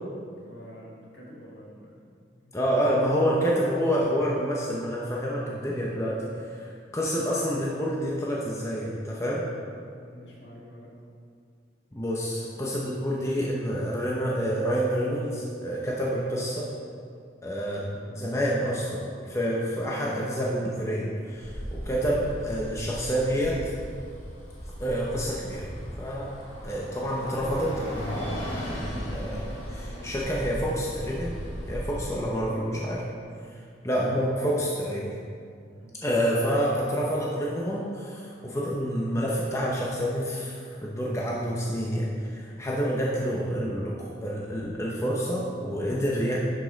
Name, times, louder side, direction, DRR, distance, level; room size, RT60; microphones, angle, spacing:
voice 1, 0.3-2.7 10.0-10.9 29.8-30.2 32.2-32.9 33.4-33.7 35.7-35.9 43.0-43.2, equal, 65° left, -5 dB, 2.1 m, -47 dB
voice 2, 2.5-9.5 11.9-16.7 17.4-23.7 24.8-25.7 26.0-26.3 26.6-28.3 28.7-31.4 31.7-33.0 33.5-35.1 36.0-46.4, equal, 15° left, -4 dB, 0.8 m, -28 dB
Bus, 21.3-32.0, equal, 35° left, 1.9 m, -37 dB
10.5 x 5.4 x 4.0 m, 2.3 s
head